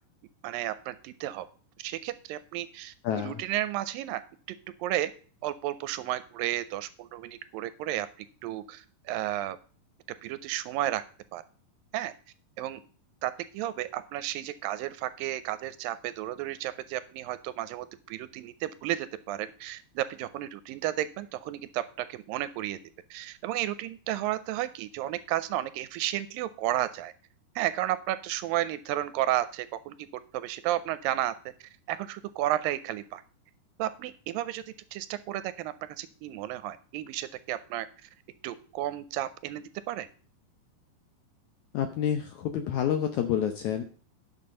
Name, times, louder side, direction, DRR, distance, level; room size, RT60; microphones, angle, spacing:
voice 1, 0.4-1.5 1.8-4.2 4.8-5.1 5.4-9.6 10.2-11.0 11.3-11.4 11.9-12.1 12.6-12.8 13.2-22.8 23.1-27.1 27.6-30.1 30.3-31.3 31.6-33.2 33.8-34.6 34.9-38.1 38.4-40.1, right 13 dB, 80° right, 14 dB, 2.2 m, -32 dB
voice 2, 3.0-3.4 41.7-43.8, left 9 dB, 75° left, 7 dB, 1.7 m, -28 dB
10.5 x 6.6 x 5.4 m, 0.41 s
omnidirectional pair, 4.2 m